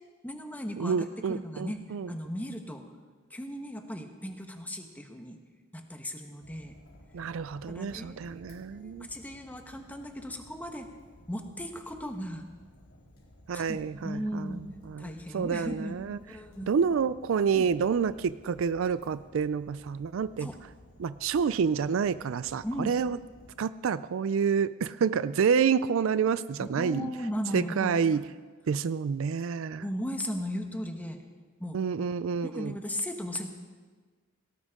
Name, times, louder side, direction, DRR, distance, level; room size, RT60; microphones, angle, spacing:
voice 1, 0.2-2.8 3.3-5.4 5.7-6.8 7.7-10.9 11.3-12.4 13.5-13.8 14.0-14.7 15.0-16.0 16.2-16.7 17.5-17.7 20.4-20.6 22.6-23.0 26.6-28.2 29.8-31.2 31.6-31.8 32.4-33.5, equal, 10° left, 4 dB, 1.2 m, -37 dB
voice 2, 0.8-2.1 7.1-9.1 13.5-14.6 14.9-16.2 16.7-20.5 21.0-23.2 23.6-27.1 27.5-28.2 28.7-29.9 31.7-32.8, right 6 dB, 70° right, 15 dB, 0.4 m, -28 dB
Fire, 6.4-23.6, left 1 dB, 80° left, 3.7 m, -56 dB
18.0 x 17.5 x 3.7 m, 1.4 s
head